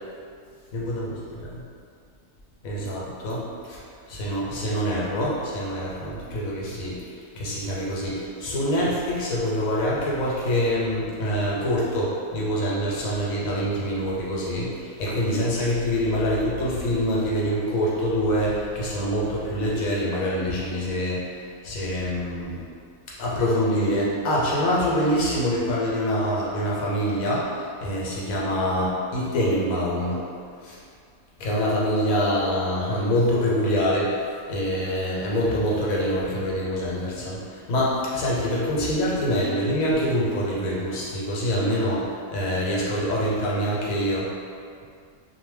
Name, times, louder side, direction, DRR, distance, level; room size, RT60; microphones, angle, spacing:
voice 1, 0.7-1.6 2.6-3.8 4.1-22.6 23.2-30.2 30.6-30.8 31.4-44.3, equal, 80° left, -5 dB, 1.1 m, -25 dB
2.6 x 2.1 x 3.3 m, 2.2 s
omnidirectional pair, 1.4 m